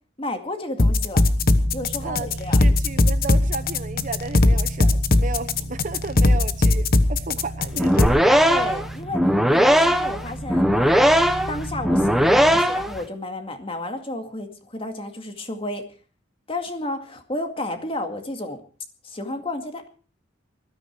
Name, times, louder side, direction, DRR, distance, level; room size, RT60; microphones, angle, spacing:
voice 1, 0.2-1.2 1.7-2.6 8.4-11.2 11.5-15.8 16.5-18.6 19.0-19.9, left 2 dB, 25° left, 6 dB, 2.2 m, -32 dB
sound 1, 0.8-8.1, left 2 dB, 45° left, 1.1 m, -18 dB
sound 2, 1.1-12.6, right 1 dB, 70° left, 6.9 m, -35 dB
voice 2, 2.0-8.4, right 3 dB, 40° right, 12 dB, 0.9 m, -33 dB
sound 3, 7.7-13.0, equal, ahead, 1.1 m, -18 dB
20.0 x 13.0 x 4.7 m, 0.39 s
head